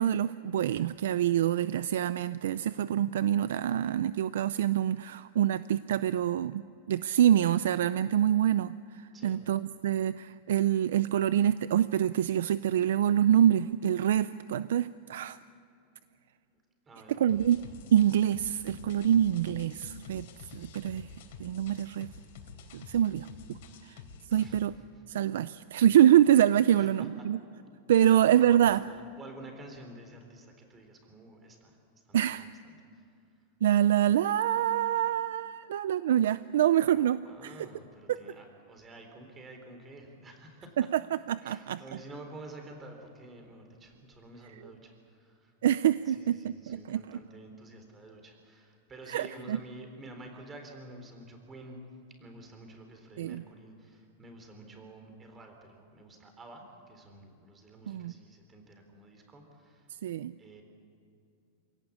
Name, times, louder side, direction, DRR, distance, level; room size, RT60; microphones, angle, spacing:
voice 1, 0.0-6.6 6.9-15.4 17.2-17.6 17.9-20.3 20.5-21.1 21.4-22.1 22.7-23.6 23.8-24.0 24.3-24.7 25.1-27.4 27.9-28.8 32.1-32.4 33.6-37.5 38.1-38.2 40.8-41.0 41.3-41.8 45.6-47.0 49.1-49.6 53.2-53.4 57.9-58.1 60.0-60.3, right 11 dB, 85° right, 15 dB, 0.5 m, -26 dB
voice 2, 16.9-17.4 23.6-23.8 24.3-24.6 26.6-27.3 27.9-31.8 32.0-33.1 36.9-40.8 41.4-45.5 46.1-51.8 52.1-59.9 60.4-60.6, right 2 dB, 15° right, 4 dB, 3.7 m, -50 dB
sound 1, 17.3-24.7, left 5 dB, 60° left, 3.9 m, -49 dB
27.0 x 17.5 x 8.5 m, 2.5 s
supercardioid pair, 160°, 0 cm